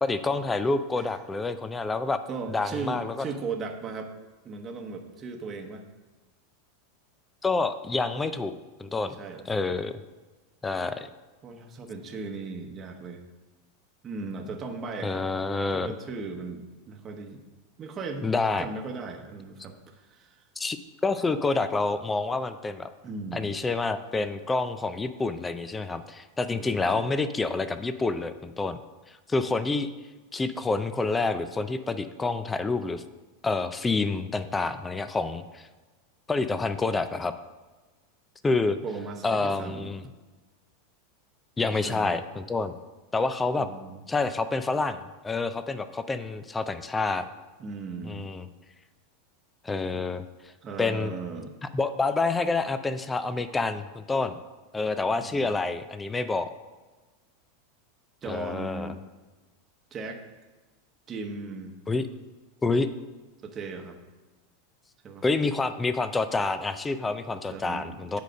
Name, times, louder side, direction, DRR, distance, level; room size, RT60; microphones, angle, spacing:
voice 1, 0.0-2.2 2.5-3.2 7.4-8.5 8.8-9.1 9.5-10.0 10.6-11.1 15.0-15.9 18.2-18.6 20.6-22.9 23.3-28.8 29.3-29.9 30.3-33.0 33.4-35.7 36.3-37.3 38.4-38.8 39.2-40.0 41.6-42.7 43.1-43.7 44.1-45.0 45.2-47.2 48.0-48.4 49.6-50.2 50.8-51.1 51.7-54.4 54.7-56.5 58.3-58.9 61.9-62.1 62.6-62.9 65.2-68.2, left 3 dB, 15° left, 12 dB, 0.4 m, -28 dB
voice 2, 2.3-4.1 4.4-5.8 9.0-9.4 11.4-13.2 14.0-15.2 15.7-17.4 17.8-18.3 18.6-20.4 23.0-23.6 26.5-27.1 38.8-39.9 41.6-42.1 43.5-44.0 47.6-48.3 50.6-51.5 55.2-55.5 58.2-59.0 59.9-60.2 61.1-61.7 63.4-64.0 65.0-65.2 67.3-68.2, right 4 dB, 25° right, 3 dB, 1.0 m, -37 dB
9.1 x 4.9 x 5.2 m, 1.2 s
supercardioid pair, 130°, 0 cm